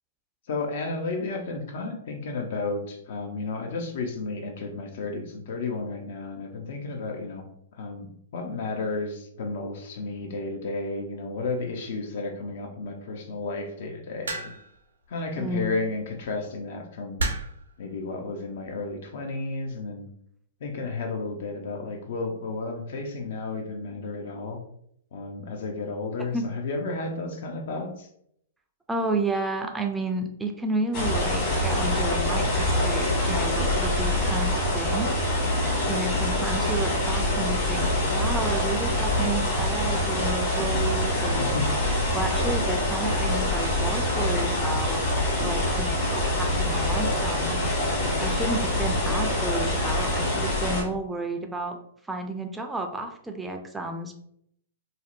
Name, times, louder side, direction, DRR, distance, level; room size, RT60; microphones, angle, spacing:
voice 1, 0.5-7.5 7.8-14.5 15.1-17.2 17.8-20.1 20.6-24.6 25.1-28.1 41.4-41.7 48.6-48.8, left 3 dB, 60° left, 3 dB, 0.5 m, -32 dB
sound 1, 14.3-14.8 16.0-16.2 17.2-17.7 18.6-18.9, right 2 dB, 80° right, 0.4 m, -30 dB
voice 2, 15.4-15.7 26.3-26.4 28.9-35.2 35.9-41.6 42.1-45.1 45.4-47.6 48.2-51.8 52.1-54.2, right 2 dB, 10° right, 4 dB, 0.4 m, -31 dB
sound 2, 30.9-50.8, left 1 dB, 35° left, 1.2 m, -25 dB
2.7 x 2.0 x 2.5 m, 0.70 s
hypercardioid pair, 115°, 0 cm